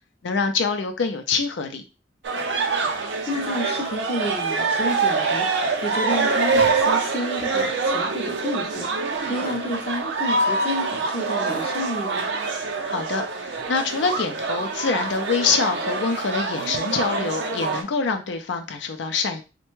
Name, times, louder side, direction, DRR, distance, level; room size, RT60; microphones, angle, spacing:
voice 1, 0.2-1.8 12.9-19.4, left 4 dB, 85° left, 6 dB, 0.4 m, -25 dB
sound 1, 2.2-17.8, right 4 dB, 75° right, 0.5 m, -25 dB
voice 2, 3.3-12.2, left 1 dB, 35° left, 3 dB, 0.5 m, -30 dB
3.2 x 2.2 x 3.0 m, 0.30 s
head